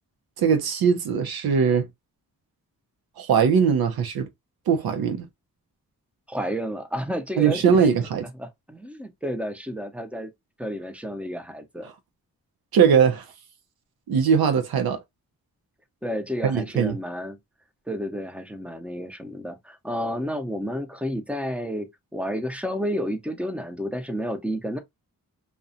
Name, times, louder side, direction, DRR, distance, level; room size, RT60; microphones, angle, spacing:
voice 1, 0.4-1.9 3.2-4.3 4.7-5.2 7.4-8.2 12.7-13.3 14.1-15.0 16.4-17.0, right 7 dB, 90° right, 0.5 m, -20 dB
voice 2, 6.3-7.9 8.4-10.3 10.6-11.9 16.0-17.4 17.9-21.9 22.1-24.8, equal, 5° right, 0.6 m, -31 dB
2.4 x 2.1 x 2.6 m
cardioid pair, 50°, 36 cm